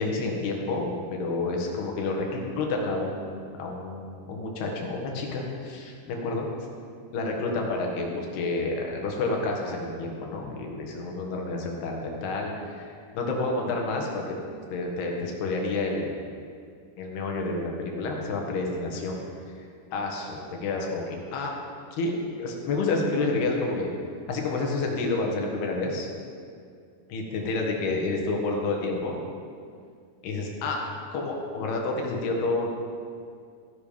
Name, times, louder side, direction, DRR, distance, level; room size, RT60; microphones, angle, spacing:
voice 1, 0.0-6.5 7.1-14.4 14.7-16.2 17.0-19.2 19.9-21.5 22.0-22.1 22.4-23.9 24.3-26.1 27.1-29.2 30.2-30.8 31.1-32.7, left 3 dB, 85° left, 0 dB, 3.7 m, -29 dB
15.0 x 11.0 x 5.1 m, 2.2 s
omnidirectional pair, 4.5 m